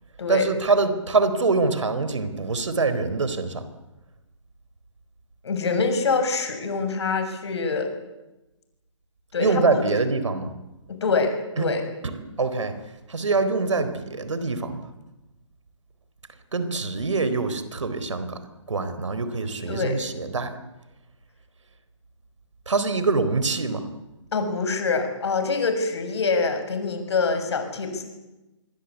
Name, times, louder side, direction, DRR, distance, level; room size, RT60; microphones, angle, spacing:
voice 1, 0.3-3.7 9.4-10.5 11.6-11.7 12.0-12.8 13.1-14.8 16.5-18.4 18.7-20.5 22.7-23.9, right 3 dB, 70° right, 12 dB, 4.1 m, -24 dB
voice 2, 5.4-7.9 9.3-9.9 10.9-11.8 19.7-20.0 24.3-28.0, left 4 dB, 60° left, 7 dB, 6.7 m, -25 dB
27.0 x 22.5 x 8.4 m, 1.0 s
figure-of-eight pair, 140°, 16 cm